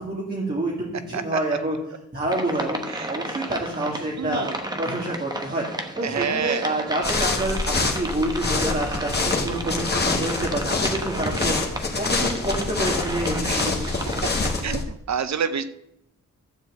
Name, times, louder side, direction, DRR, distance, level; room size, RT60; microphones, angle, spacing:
voice 1, 0.0-1.8 2.1-4.5 4.8-5.7 6.0-11.6 11.9-13.7, right 1 dB, 30° right, -4 dB, 1.9 m, -28 dB
sound 1, 2.3-14.6, right 1 dB, 15° right, 1.0 m, -33 dB
voice 2, 4.2-4.5 6.0-6.7 13.4-13.6 14.4-14.8 15.1-15.6, right 7 dB, 65° right, 11 dB, 0.6 m, -27 dB
sound 2, 7.0-14.8, left 3 dB, 35° left, 1.5 m, -26 dB
13.0 x 4.5 x 7.6 m, 0.83 s
wide cardioid pair, 150°, 30 cm